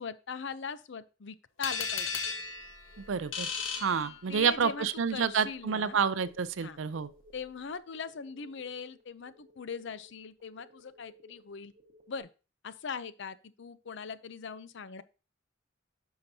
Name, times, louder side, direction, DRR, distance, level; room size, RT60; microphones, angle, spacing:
voice 1, 0.0-2.2 4.3-6.0 6.6-6.8 7.3-11.7 12.1-12.3 12.6-15.0, left 5 dB, 65° left, 0.6 m, -41 dB
sound 1, 1.6-4.6, left 5 dB, 85° left, 1.1 m, -36 dB
sound 2, 2.2-12.2, left 1 dB, 40° right, 1.4 m, -60 dB
voice 2, 3.0-3.5 3.8-7.1, right 6 dB, 75° right, 0.5 m, -29 dB
10.5 x 5.8 x 2.8 m
head